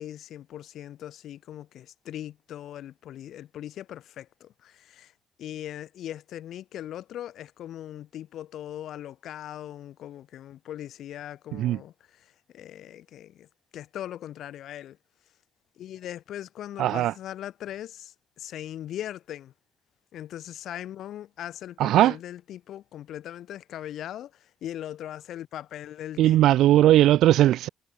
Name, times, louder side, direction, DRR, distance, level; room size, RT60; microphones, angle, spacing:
voice 1, 0.0-5.1 5.4-15.0 15.8-19.5 20.1-26.5, left 11 dB, 75° left, 1.8 m, -40 dB
voice 2, 16.8-17.1 21.8-22.1 26.2-27.7, right 13 dB, 80° right, 0.4 m, -19 dB
cardioid pair, 90°, 0 cm